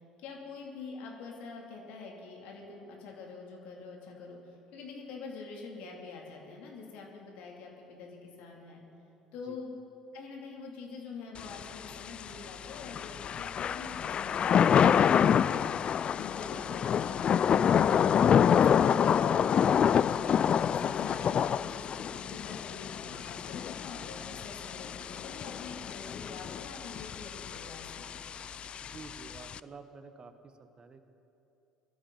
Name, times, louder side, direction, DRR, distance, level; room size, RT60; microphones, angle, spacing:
voice 1, 0.2-4.4 4.7-8.8 9.3-9.7 10.1-15.2 16.1-17.4 17.7-20.4 20.8-28.0, left 4 dB, 60° left, 0 dB, 2.8 m, -45 dB
Thunder / Rain, 11.4-29.6, left 8 dB, 40° left, 0.3 m, -27 dB
voice 2, 28.8-31.1, right 4 dB, 35° right, 9 dB, 1.3 m, -50 dB
22.0 x 13.0 x 4.1 m, 2.8 s
figure-of-eight pair, 60°, 3 cm